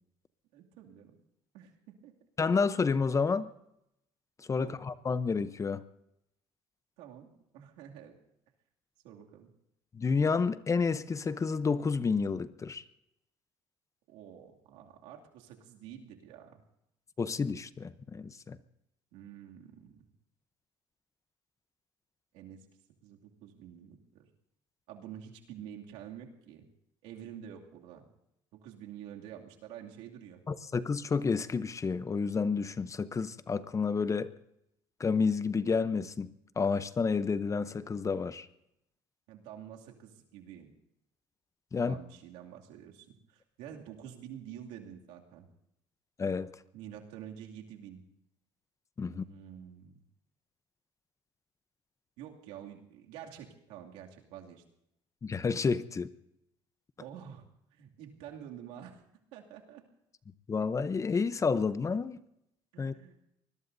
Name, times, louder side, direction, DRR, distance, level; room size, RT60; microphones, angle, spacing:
voice 1, 0.5-1.2 1.5-2.1 4.5-4.8 7.0-7.3 7.5-8.2 9.0-9.5 14.1-16.6 19.1-20.0 22.3-22.7 23.0-24.2 24.9-26.7 27.0-28.1 28.5-30.4 39.3-40.7 41.7-45.5 46.7-48.0 49.0-50.0 52.2-54.6 57.0-57.4 57.7-59.0 59.3-59.8 62.7-63.3, right 9 dB, 85° right, 1 dB, 2.5 m, -48 dB
voice 2, 2.4-3.5 4.5-5.8 9.9-12.8 17.2-18.6 30.5-34.3 35.0-38.5 41.7-41.9 46.2-46.5 49.0-49.2 55.2-56.1 60.5-62.2 62.8-62.9, left 5 dB, 25° left, 14 dB, 0.8 m, -30 dB
25.0 x 21.0 x 2.7 m, 0.80 s
cardioid pair, 100°, 11 cm